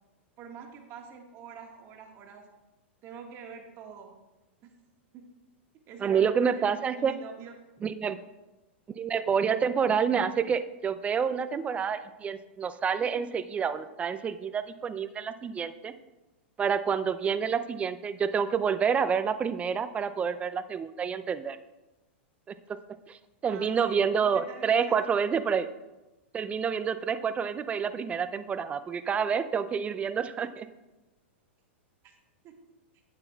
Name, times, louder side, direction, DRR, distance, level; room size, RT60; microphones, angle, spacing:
voice 1, 0.4-2.4 3.0-4.1 5.1-5.2 5.9-7.5 23.5-25.0 30.4-30.5 32.0-32.1 32.4-32.5, right 6 dB, 40° right, 2 dB, 1.6 m, -45 dB
voice 2, 6.0-7.2 7.8-8.2 8.9-15.9 16.6-21.6 22.7-22.8 23.1-25.7 26.3-30.7, right 6 dB, 20° right, 12 dB, 0.4 m, -28 dB
11.0 x 8.8 x 2.3 m, 1.1 s
hypercardioid pair, 115°, 7 cm